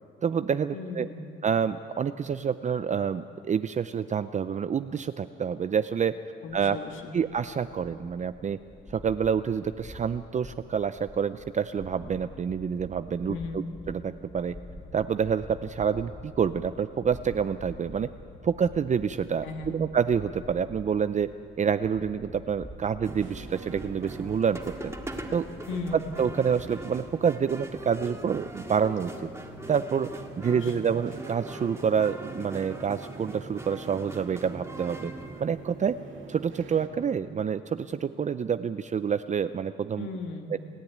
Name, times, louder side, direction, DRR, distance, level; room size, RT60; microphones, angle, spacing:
voice 1, 0.2-1.1 1.4-6.1 6.5-6.8 7.1-8.6 8.9-14.5 14.9-18.1 18.4-21.3 21.6-24.9 25.3-25.5 26.2-29.3 29.7-35.1 35.4-35.9 36.3-40.1 40.5-40.6, right 7 dB, 35° right, 11 dB, 0.6 m, -28 dB
voice 2, 0.7-1.2 6.4-7.1 13.3-13.6 19.4-19.7 25.7-26.1 30.4-30.9 40.0-40.5, left 4 dB, 75° left, 3 dB, 1.9 m, -37 dB
sound 1, 6.9-26.3, left 1 dB, 20° left, 3.5 m, -47 dB
sound 2, 23.0-35.4, right 1 dB, 15° right, 2.1 m, -41 dB
sound 3, 23.1-36.9, right 6 dB, 80° right, 1.8 m, -47 dB
29.0 x 10.5 x 9.3 m, 2.6 s
cardioid pair, 90°, 20 cm